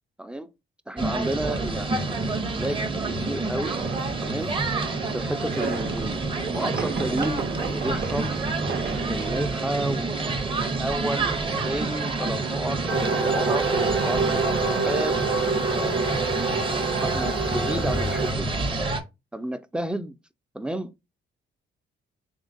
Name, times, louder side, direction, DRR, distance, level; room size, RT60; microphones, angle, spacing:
voice 1, 0.2-0.5 0.9-3.8 4.2-4.6 5.1-6.2 6.5-8.3 9.1-10.4 10.8-15.2 15.7-16.1 17.0-18.6 19.3-20.1 20.5-21.0, right 1 dB, 5° right, 0.3 m, -32 dB
sound 1, 1.0-19.0, right 3 dB, 25° right, 0.8 m, -28 dB
sound 2, 3.7-10.7, right 5 dB, 55° right, 1.1 m, -35 dB
sound 3, 12.9-18.3, right 3 dB, 90° right, 1.1 m, -27 dB
3.6 x 3.4 x 2.6 m
cardioid pair, 90°, 20 cm